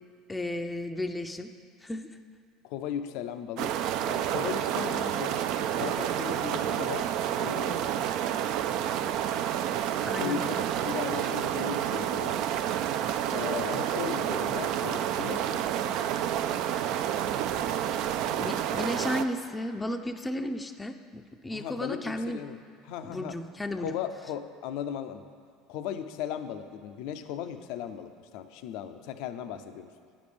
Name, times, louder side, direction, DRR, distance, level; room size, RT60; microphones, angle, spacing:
voice 1, 0.3-1.5 1.8-2.1 10.0-10.4 18.4-22.4 23.0-23.9, left 1 dB, 15° left, 7 dB, 0.4 m, -34 dB
voice 2, 2.6-3.7 4.0-5.4 5.7-7.1 7.4-8.0 10.2-12.4 13.3-15.6 21.5-22.6 22.8-23.4 23.8-25.2 25.7-29.9, left 9 dB, 70° left, 9 dB, 0.4 m, -37 dB
sound 1, 3.6-19.2, right 10 dB, 65° right, 0.3 m, -29 dB
8.9 x 5.1 x 5.2 m, 2.1 s
hypercardioid pair, 80°, 0 cm